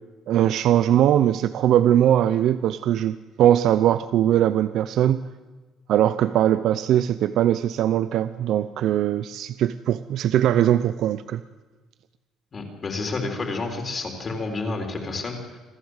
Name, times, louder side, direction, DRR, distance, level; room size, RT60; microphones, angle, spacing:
voice 1, 0.3-5.2 5.9-11.4, right 11 dB, 65° right, 13 dB, 0.6 m, -20 dB
voice 2, 12.5-15.6, left 3 dB, 30° left, 3 dB, 3.9 m, -30 dB
26.5 x 14.5 x 8.1 m, 1.3 s
cardioid pair, 135°, 0 cm